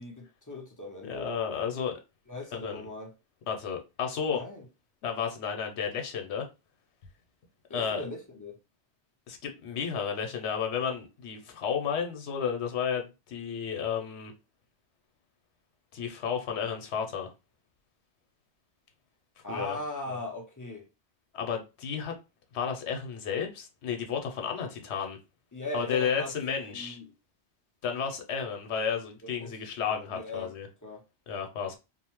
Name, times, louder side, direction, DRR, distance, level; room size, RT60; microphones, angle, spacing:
voice 1, 0.0-1.3 2.3-3.1 4.3-4.6 7.7-8.6 19.4-20.9 25.5-27.1 29.4-29.5 29.9-30.5 30.8-31.0, left 2 dB, 25° left, 0.5 m, -39 dB
voice 2, 1.1-2.0 2.5-2.9 3.5-4.4 5.0-6.5 7.7-8.0 9.3-14.3 15.9-17.3 19.5-19.8 20.1-20.2 21.3-22.2 22.5-25.2 25.7-27.0 27.8-30.7 31.3-31.8, left 7 dB, 80° left, 0.9 m, -32 dB
2.7 x 2.0 x 2.9 m
omnidirectional pair, 1.1 m